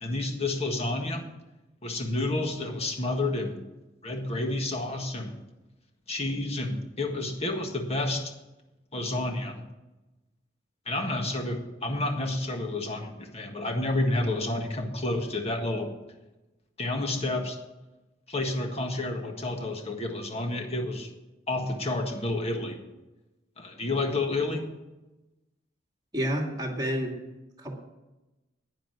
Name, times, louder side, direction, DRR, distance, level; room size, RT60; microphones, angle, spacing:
voice 1, 0.0-1.3 1.8-3.6 4.0-5.3 6.1-8.3 8.9-9.6 10.8-15.9 16.8-17.6 18.3-21.1 21.5-22.8 23.6-24.7, left 2 dB, 35° left, 4 dB, 1.7 m, -30 dB
voice 2, 26.1-27.2 27.6-27.7, equal, 20° right, 0 dB, 2.4 m, -29 dB
10.5 x 10.0 x 6.3 m, 1.0 s
head